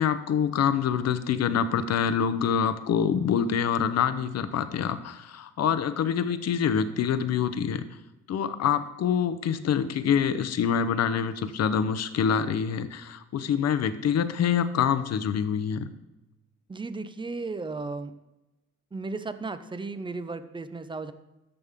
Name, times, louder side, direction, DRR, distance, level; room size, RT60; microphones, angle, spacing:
voice 1, 0.0-7.8 8.3-15.9, left 7 dB, 55° left, 12 dB, 0.8 m, -26 dB
voice 2, 16.7-18.1 18.9-21.1, right 3 dB, 15° right, 11 dB, 0.6 m, -35 dB
13.5 x 5.4 x 3.6 m, 1.0 s
cardioid pair, 90°, 30 cm